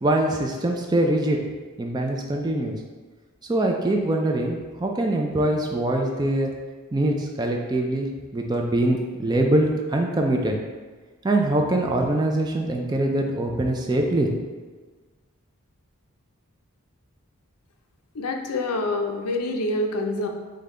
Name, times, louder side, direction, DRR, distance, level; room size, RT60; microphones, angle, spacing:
voice 1, 0.0-1.4 1.8-2.8 3.5-6.5 6.9-10.6 11.2-14.3, right 1 dB, 20° right, 2 dB, 0.3 m, -23 dB
voice 2, 18.1-20.3, left 2 dB, 85° left, 4 dB, 0.5 m, -26 dB
5.1 x 2.2 x 3.7 m, 1.4 s
head